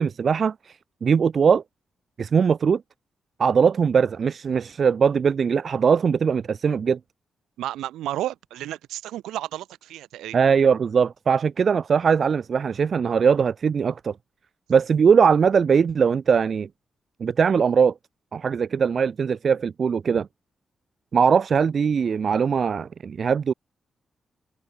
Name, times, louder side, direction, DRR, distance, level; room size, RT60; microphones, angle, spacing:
voice 1, 0.0-1.6 2.2-2.8 3.4-7.0 10.3-14.2 14.7-16.7 17.2-17.9 18.3-20.3 21.1-23.5, right 6 dB, 60° right, 0.5 m, -20 dB
voice 2, 7.6-10.4 20.1-20.2, right 13 dB, 90° right, 7.4 m, -32 dB
supercardioid pair, 50°, 0 cm